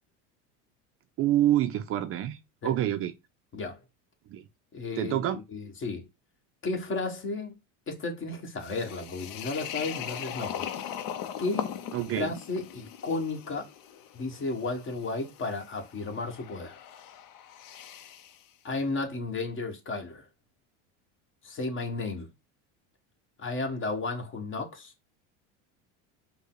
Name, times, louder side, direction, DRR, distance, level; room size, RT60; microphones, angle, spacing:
voice 1, 1.2-2.4 2.6-3.1 4.3-4.4 5.0-5.4 11.9-12.3, right 12 dB, 40° right, 0.5 m, -27 dB
voice 2, 4.7-5.1 5.5-6.1 6.6-7.5 7.9-10.6 11.4-11.7 12.1-13.7 14.1-16.8 18.6-20.2 21.4-22.3 23.4-24.9, left 3 dB, 35° left, 1.5 m, -33 dB
sound 1, 8.6-18.4, left 9 dB, 60° left, 0.7 m, -40 dB
5.3 x 2.2 x 3.8 m
supercardioid pair, 120°, 36 cm